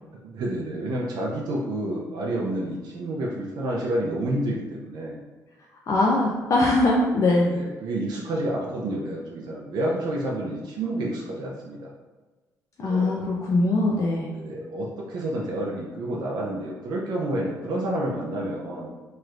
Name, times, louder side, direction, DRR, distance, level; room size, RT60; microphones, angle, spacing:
voice 1, 0.1-5.2 6.1-6.3 7.3-11.9 12.8-13.1 14.3-18.9, right 1 dB, 80° right, -3 dB, 0.6 m, -29 dB
voice 2, 5.9-7.5 12.8-14.3, left 2 dB, 50° left, -3 dB, 0.4 m, -21 dB
3.2 x 3.1 x 2.4 m, 1.3 s
cardioid pair, 100°, 7 cm